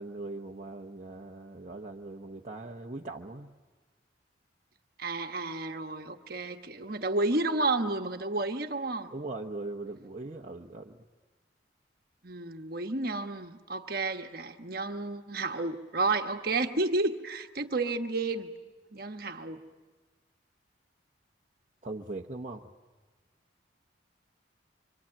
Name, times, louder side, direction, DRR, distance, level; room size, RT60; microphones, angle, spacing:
voice 1, 0.0-3.5 9.1-11.0 21.8-22.7, right 2 dB, 35° right, 0 dB, 0.9 m, -40 dB
voice 2, 5.0-9.1 12.2-18.5 18.9-19.6, right 2 dB, 50° right, 6 dB, 1.3 m, -31 dB
25.5 x 25.0 x 8.7 m, 1.3 s
head